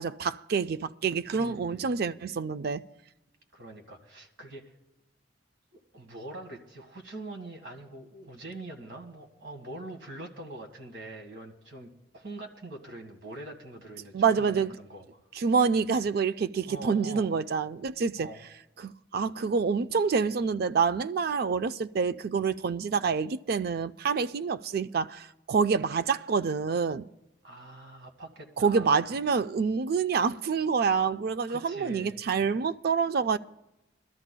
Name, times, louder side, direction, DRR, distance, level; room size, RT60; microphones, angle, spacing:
voice 1, 0.0-2.8 14.1-14.7 15.4-18.3 18.8-27.1 28.6-33.4, right 5 dB, 55° right, 0.4 m, -27 dB
voice 2, 1.4-1.9 3.5-4.7 5.7-15.2 16.7-17.3 18.2-18.4 27.4-29.0 31.5-32.2, right 2 dB, 75° right, 1.7 m, -44 dB
22.5 x 13.0 x 2.2 m
head